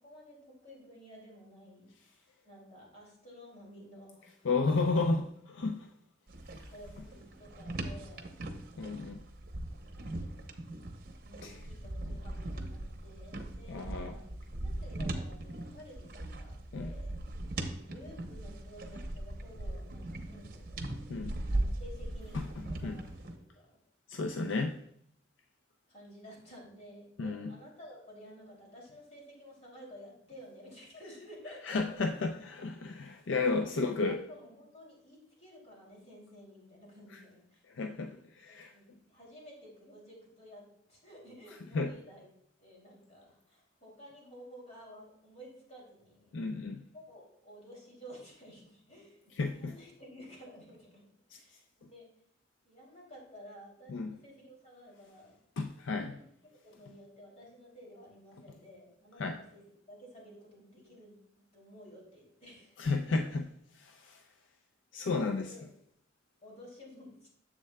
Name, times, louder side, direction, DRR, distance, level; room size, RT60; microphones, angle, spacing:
voice 1, 0.0-4.5 6.7-8.3 11.2-14.3 14.6-17.5 17.7-20.8 21.5-22.4 22.7-23.8 25.9-31.9 33.6-37.6 38.7-40.6 40.9-42.3 42.6-46.4 46.9-52.1 52.6-55.4 55.9-59.6 59.9-61.2 61.5-63.0 65.0-65.7 66.4-67.3, equal, 35° left, -3 dB, 2.8 m, -53 dB
voice 2, 4.4-5.9 8.8-9.2 11.4-11.6 13.7-14.2 16.7-16.9 21.1-21.4 22.8-23.0 24.1-24.8 27.2-27.5 31.6-34.2 37.1-37.2 37.7-38.7 41.7-41.9 46.3-46.8 49.4-49.7 51.3-51.4 53.9-54.2 55.6-56.2 59.2-59.4 62.8-63.5 63.8-64.2 64.9-65.5, left 3 dB, 85° left, 5 dB, 0.5 m, -32 dB
sound 1, 6.3-23.3, right 1 dB, 50° right, 0.8 m, -39 dB
9.8 x 7.5 x 2.2 m, 0.70 s
head